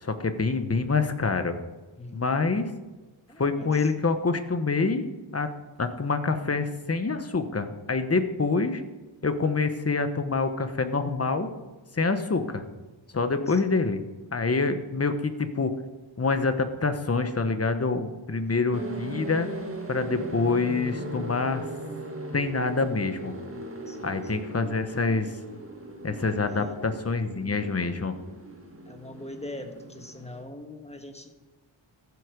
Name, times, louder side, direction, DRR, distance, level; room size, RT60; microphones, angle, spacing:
voice 1, 0.0-1.6 2.1-2.7 3.4-5.0 5.3-5.5 5.8-8.8 9.2-11.5 11.9-12.6 13.1-14.0 14.3-15.7 16.2-19.5 19.9-21.7 22.3-23.3 24.0-25.3 26.0-28.1, left 4 dB, 30° left, 8 dB, 1.2 m, -26 dB
voice 2, 3.3-3.9 12.5-12.7 13.4-13.6 14.4-14.7 18.5-18.6 23.9-24.2 26.5-26.7 28.8-31.3, left 1 dB, 15° left, 5 dB, 1.5 m, -42 dB
sound 1, 18.7-30.4, right 1 dB, 25° right, 1.9 m, -38 dB
14.5 x 8.1 x 5.2 m, 1.2 s
wide cardioid pair, 95°, 48 cm